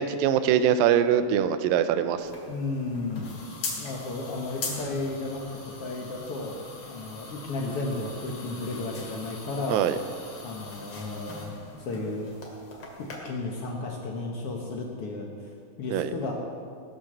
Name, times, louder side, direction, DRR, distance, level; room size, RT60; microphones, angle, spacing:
voice 1, 0.0-2.3 9.7-10.0 15.9-16.1, right 9 dB, 80° right, 11 dB, 2.3 m, -23 dB
sound 1, 2.2-13.2, left 3 dB, 45° left, 2.7 m, -41 dB
voice 2, 2.5-3.2 3.8-6.6 6.8-9.9 10.4-11.5 11.8-12.3 13.2-15.3 15.8-16.3, left 3 dB, 70° left, 0 dB, 1.4 m, -33 dB
18.5 x 6.6 x 6.7 m, 2.2 s
omnidirectional pair, 4.3 m